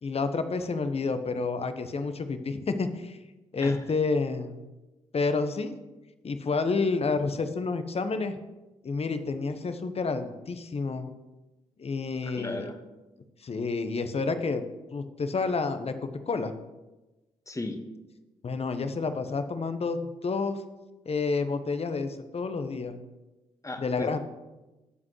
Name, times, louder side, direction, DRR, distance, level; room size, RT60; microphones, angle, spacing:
voice 1, 0.0-3.2 3.5-4.6 5.1-5.8 6.2-8.4 8.8-11.1 11.8-12.6 13.4-14.6 14.9-16.5 18.4-20.6 21.0-23.0 23.8-24.2, left 4 dB, 40° left, 9 dB, 1.1 m, -29 dB
voice 2, 12.2-12.8 17.5-17.8 23.6-24.2, left 2 dB, 20° left, 6 dB, 1.5 m, -36 dB
18.0 x 7.4 x 3.2 m, 1.1 s
hypercardioid pair, 40°, 16 cm